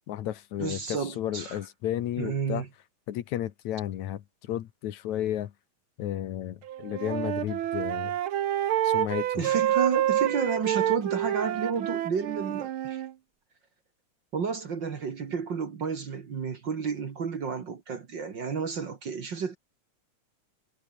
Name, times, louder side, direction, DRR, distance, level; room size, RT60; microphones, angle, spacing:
voice 1, 0.1-2.7 3.1-5.5 6.0-8.2 8.8-9.6, left 12 dB, 75° left, 2.5 m, -33 dB
voice 2, 0.6-1.6 2.2-2.7 9.4-13.0 14.3-19.6, right 6 dB, 45° right, 2.0 m, -31 dB
Wind instrument woodwind instrument, 6.7-13.1, right 12 dB, 65° right, 1.3 m, -28 dB
omnidirectional pair, 3.4 m